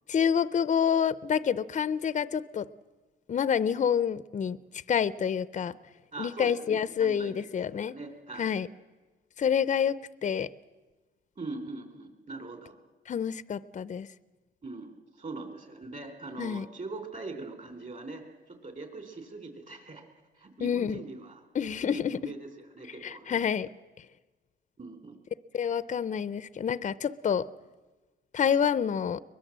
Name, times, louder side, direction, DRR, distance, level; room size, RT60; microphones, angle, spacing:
voice 1, 0.1-2.7 3.3-4.6 4.9-5.8 6.2-7.9 8.4-8.7 9.4-10.5 13.1-14.1 16.4-16.6 20.6-21.0 21.5-22.3 23.0-23.7 25.5-27.5 28.3-29.2, left 7 dB, 40° left, 16 dB, 0.6 m, -28 dB
voice 2, 6.1-7.3 7.7-8.5 11.4-12.7 14.6-20.0 20.4-21.4 21.8-23.4 24.8-25.2 25.5-25.7, right 3 dB, 40° right, 6 dB, 3.9 m, -42 dB
22.5 x 20.5 x 7.5 m, 1.2 s
cardioid pair, 90°, 20 cm